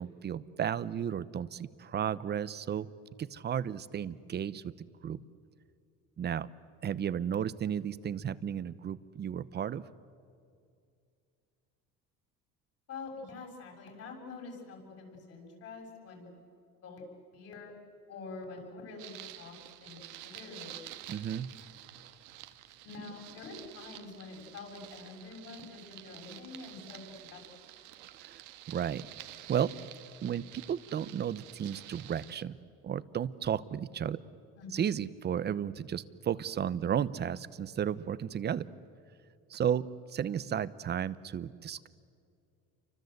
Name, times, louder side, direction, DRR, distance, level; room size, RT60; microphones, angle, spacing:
voice 1, 0.0-2.9 3.2-4.7 5.0-5.2 6.2-6.5 6.8-9.8 21.1-21.5 28.2-28.4 28.7-29.1 29.5-29.7 30.2-32.6 32.8-34.2 34.7-38.7 39.5-41.9, right 9 dB, 35° right, 17 dB, 0.9 m, -33 dB
voice 2, 12.9-16.3 16.8-17.0 17.3-17.7 18.1-19.5 19.8-20.8 22.8-27.6 34.6-34.9, left 3 dB, 55° left, 1 dB, 7.4 m, -46 dB
sound 1, 19.0-32.4, right 14 dB, 75° right, 1.6 m, -50 dB
29.5 x 24.5 x 8.1 m, 2.4 s
cardioid pair, 120°, 30 cm